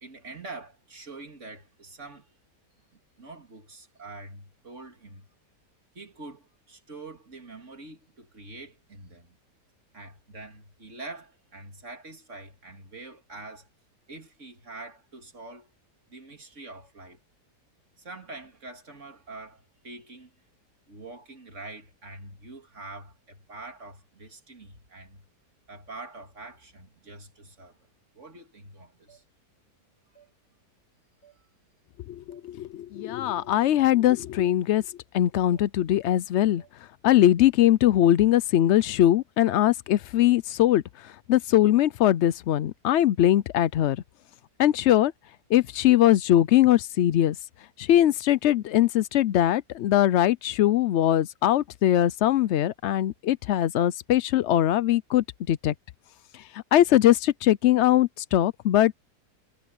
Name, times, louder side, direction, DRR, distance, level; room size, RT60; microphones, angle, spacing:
voice 1, 0.0-2.3 3.2-5.3 5.9-9.4 9.9-13.7 14.1-15.7 16.1-17.2 18.0-20.3 20.9-25.3 25.7-27.8 28.1-29.2 31.4-31.5, right 2 dB, 45° right, 3.0 m, -45 dB
sound 1, 29.1-29.2 30.1-30.3 31.2-31.4 32.3-32.4 33.4-33.5 34.4-34.6 35.5-35.7 36.6-36.7, right 8 dB, 50° left, 3.5 m, -57 dB
voice 2, 32.1-34.8 35.1-36.6 37.0-44.0 44.6-45.1 45.5-47.4 47.8-55.7 56.3-58.9, left 12 dB, 85° left, 0.6 m, -21 dB
omnidirectional pair, 1.8 m